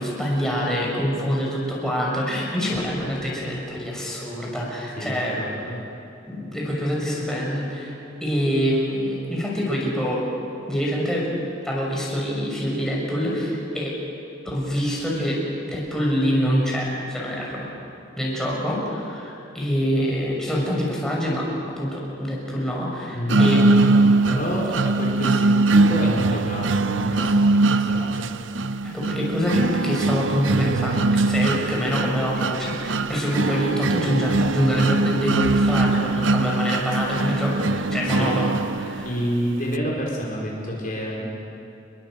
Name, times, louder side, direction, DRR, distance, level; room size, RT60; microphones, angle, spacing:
voice 1, 0.0-5.4 6.3-7.9 8.2-10.2 10.7-11.3 11.6-13.9 14.4-17.7 18.2-21.5 21.7-23.6 28.9-39.1, equal, 5° left, -4 dB, 6.4 m, -25 dB
voice 2, 5.0-5.8 23.1-28.3 38.1-38.3 39.0-41.2, equal, 45° left, -3 dB, 4.7 m, -28 dB
sound 1, 23.3-39.3, right 3 dB, 70° right, 0.7 m, -21 dB
28.0 x 22.0 x 7.9 m, 2.9 s
head